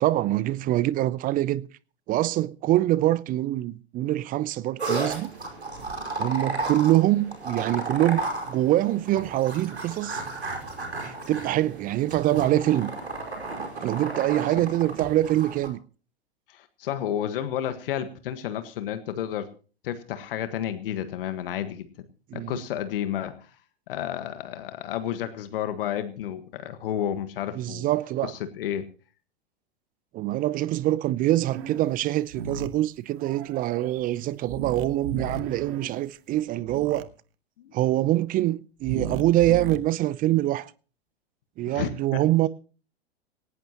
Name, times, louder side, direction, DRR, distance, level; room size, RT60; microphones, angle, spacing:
voice 1, 0.0-1.7 2.1-5.3 6.2-10.2 11.0-12.9 13.8-15.8 22.3-22.6 27.6-28.3 30.1-37.1 37.7-40.7 41.6-42.5, right 15 dB, 25° right, 0.6 m, -24 dB
sound 1, 4.8-15.7, right 2 dB, 85° right, 5.0 m, -33 dB
voice 2, 16.5-19.5 19.8-21.9 22.3-23.5 23.9-27.9 28.2-28.9 37.6-37.7 41.7-42.2, left 10 dB, 60° left, 1.6 m, -31 dB
sound 2, 31.4-32.0 32.3-32.8 33.1-36.4, right 10 dB, 40° right, 2.1 m, -43 dB
sound 3, 32.3-32.7 34.5-35.4 36.7-37.0 38.8-39.8, right 6 dB, 65° right, 1.5 m, -33 dB
18.5 x 17.5 x 3.0 m
figure-of-eight pair, 100°, 32 cm